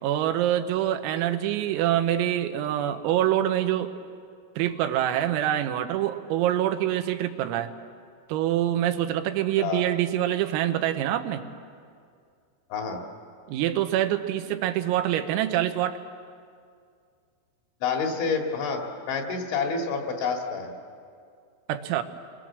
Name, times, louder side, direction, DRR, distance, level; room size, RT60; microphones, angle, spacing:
voice 1, 0.0-3.9 4.6-7.7 8.3-11.4 13.5-16.0 21.7-22.0, right 12 dB, 90° right, 7 dB, 3.8 m, -25 dB
voice 2, 12.7-13.0 17.8-20.7, left 5 dB, 65° left, 2 dB, 4.4 m, -28 dB
30.0 x 22.5 x 7.5 m, 2.2 s
omnidirectional pair, 5.9 m